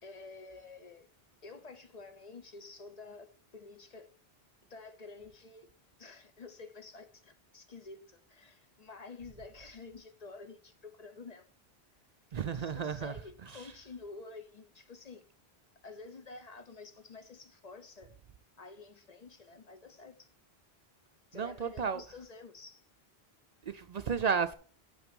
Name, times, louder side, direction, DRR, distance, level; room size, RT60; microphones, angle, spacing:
voice 1, 0.0-1.1 1.4-4.1 4.7-5.7 6.0-11.4 12.5-15.2 15.8-18.1 18.6-20.3 21.3-22.9, left 4 dB, 40° left, 0.9 m, -50 dB
voice 2, 12.3-13.1 21.3-22.0 23.7-24.5, right 6 dB, 55° right, 0.5 m, -32 dB
7.0 x 6.0 x 5.2 m
omnidirectional pair, 1.1 m